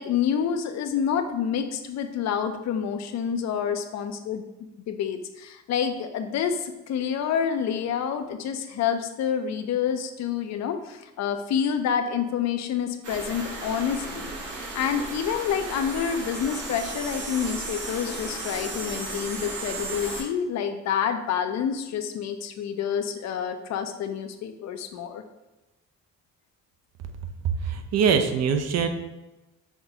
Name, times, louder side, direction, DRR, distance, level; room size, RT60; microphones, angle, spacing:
voice 1, 0.0-4.4 4.9-25.2, left 8 dB, 60° left, 7 dB, 0.4 m, -28 dB
sound 1, 13.0-20.2, right 2 dB, 75° right, 1.0 m, -35 dB
voice 2, 27.6-28.9, right 6 dB, 60° right, 7 dB, 0.5 m, -23 dB
5.7 x 2.2 x 2.7 m, 1.0 s
cardioid pair, 90°, 30 cm